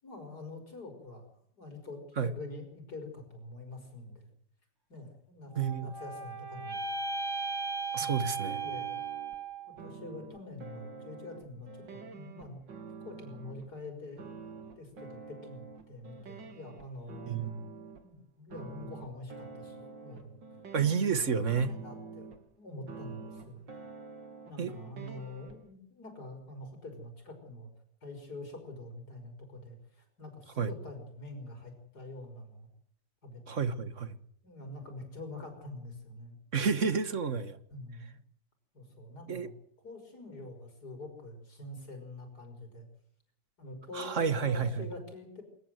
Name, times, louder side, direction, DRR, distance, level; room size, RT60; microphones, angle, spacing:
voice 1, 0.0-4.3 4.9-6.8 8.0-9.0 9.8-12.6 13.0-14.2 14.8-17.3 18.0-20.4 21.2-23.6 24.4-27.7 28.0-32.7 33.2-33.7 34.4-36.4 37.7-38.2 38.7-39.5 39.8-42.9 43.6-45.4, left 2 dB, 60° left, 6.4 m, -46 dB
sound 1, 5.5-9.8, right 4 dB, 10° right, 3.1 m, -36 dB
voice 2, 5.6-5.9 7.9-8.6 17.3-17.5 20.7-21.7 24.6-24.7 30.6-30.7 33.5-34.2 36.5-37.6 39.3-39.5 43.9-44.8, right 6 dB, 45° right, 1.6 m, -30 dB
sound 2, 8.4-9.4 9.8-13.7 14.2-18.0 18.5-22.5 22.9-25.6, right 4 dB, 75° right, 2.9 m, -48 dB
27.0 x 14.0 x 7.9 m
omnidirectional pair, 2.0 m